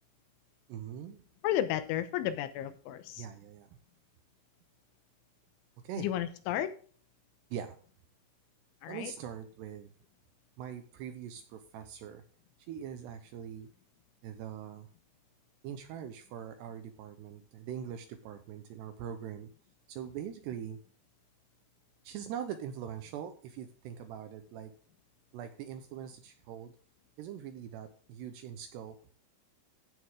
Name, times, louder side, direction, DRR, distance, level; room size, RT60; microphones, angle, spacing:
voice 1, 0.7-1.2 3.2-3.7 5.8-6.1 7.5-7.8 8.9-9.9 10.6-12.2 12.7-13.7 14.2-14.9 15.6-19.5 19.9-20.8 22.0-24.7 25.3-26.7 27.2-29.0, right 9 dB, 75° right, 8 dB, 2.6 m, -42 dB
voice 2, 1.4-3.3 6.0-6.7 8.8-9.1, left 12 dB, 80° left, 11 dB, 3.2 m, -33 dB
15.5 x 6.3 x 3.7 m, 0.44 s
omnidirectional pair, 5.6 m